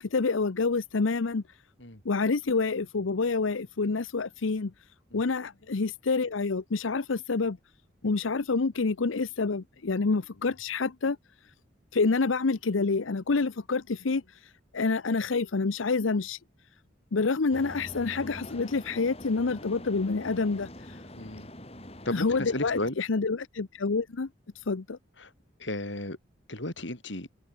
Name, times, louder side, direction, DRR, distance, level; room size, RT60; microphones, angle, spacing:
voice 1, 0.0-1.4 2.1-4.7 5.1-7.6 8.0-11.2 11.9-14.2 14.7-16.4 17.1-20.7 22.1-24.3 24.7-25.0, left 4 dB, 90° left, 0.7 m, -27 dB
sound 1, 17.5-22.9, left 1 dB, 30° left, 5.2 m, -44 dB
voice 2, 21.1-21.5 22.1-23.0 25.2-25.3 25.6-26.2 26.5-27.3, left 1 dB, 70° left, 5.4 m, -34 dB
open air
head